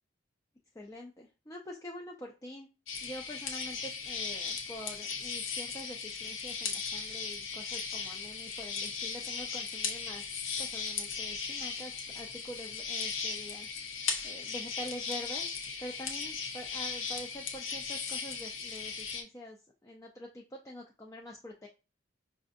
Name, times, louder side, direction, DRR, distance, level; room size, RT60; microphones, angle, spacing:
voice 1, 0.7-2.7 3.0-10.2 10.6-13.7 14.0-15.5 15.8-19.6 19.8-21.7, equal, 15° left, 0 dB, 0.4 m, -46 dB
sound 1, 2.9-19.2, left 5 dB, 85° left, 0.8 m, -37 dB
5.2 x 2.4 x 2.5 m, 0.30 s
head